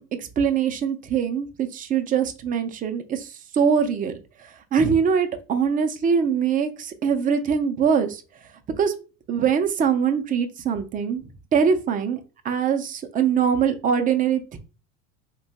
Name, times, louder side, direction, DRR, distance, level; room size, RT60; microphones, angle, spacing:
voice 1, 0.0-4.1 4.4-8.2 8.8-8.9 9.3-11.2 11.5-14.6, right 7 dB, 20° right, 7 dB, 0.5 m, -23 dB
2.7 x 2.3 x 4.0 m, 0.33 s
hypercardioid pair, 100°, 40 cm